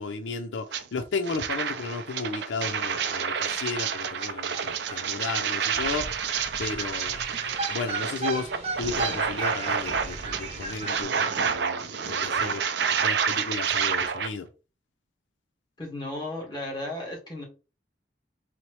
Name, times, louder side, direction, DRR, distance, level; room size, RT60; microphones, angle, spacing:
voice 1, 0.0-6.1 6.6-7.2 7.7-8.5 8.8-14.5, left 4 dB, 80° left, 0.4 m, -34 dB
sound 1, 0.7-0.8 1.2-14.3, right 7 dB, 65° right, 0.5 m, -29 dB
sound 2, 2.4-2.5 2.7-2.8 3.1-11.0, right 4 dB, 35° right, 0.8 m, -36 dB
voice 2, 15.8-17.4, left 1 dB, 25° left, 1.5 m, -34 dB
4.2 x 2.8 x 3.0 m
head